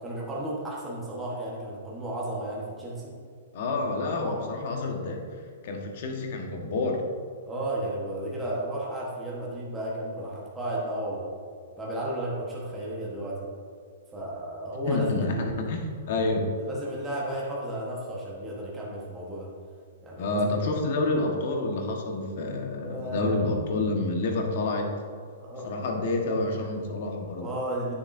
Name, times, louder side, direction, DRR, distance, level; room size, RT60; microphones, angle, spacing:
voice 1, 0.0-3.1 4.1-4.4 7.4-11.3 11.8-13.5 14.1-15.6 16.6-19.5 20.0-20.5 22.8-23.4 25.4-25.6 27.4-27.9, right 1 dB, 10° right, -6 dB, 1.1 m, -33 dB
voice 2, 3.5-5.2 5.6-7.0 14.9-16.5 20.2-24.9 25.6-27.5, left 2 dB, 55° left, 2 dB, 1.3 m, -28 dB
9.2 x 7.1 x 2.6 m, 2.1 s
hypercardioid pair, 160°, 0 cm